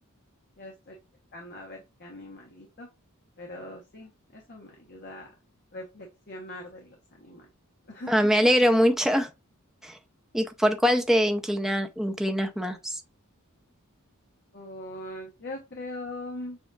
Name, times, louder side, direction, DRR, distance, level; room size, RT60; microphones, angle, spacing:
voice 1, 0.6-1.0 1.3-2.9 3.4-5.3 5.7-7.5 7.9-8.1 14.5-16.6, left 1 dB, 50° left, 1.0 m, -41 dB
voice 2, 8.1-9.3 9.8-10.0 10.3-12.9, equal, ahead, 0.5 m, -23 dB
6.9 x 2.4 x 2.4 m
head